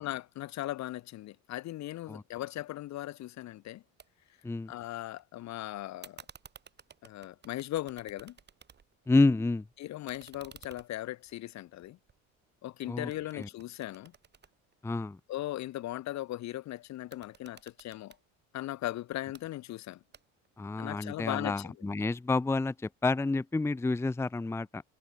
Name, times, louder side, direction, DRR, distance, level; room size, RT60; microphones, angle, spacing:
voice 1, 0.0-3.8 4.7-6.2 7.0-8.3 9.8-12.0 12.6-14.1 15.3-18.1 18.5-20.0 20.8-21.7, left 15 dB, 55° left, 1.5 m, -38 dB
sound 1, 4.0-4.1 4.4-5.2 6.0-9.1 9.4-12.7 13.1-15.3 17.0-18.2 19.1-19.4 20.1-20.6, right 7 dB, 30° right, 6.0 m, -55 dB
voice 2, 9.1-9.6 12.9-13.5 14.8-15.2 20.6-24.8, left 3 dB, 10° left, 0.7 m, -29 dB
cardioid pair, 125°, 33 cm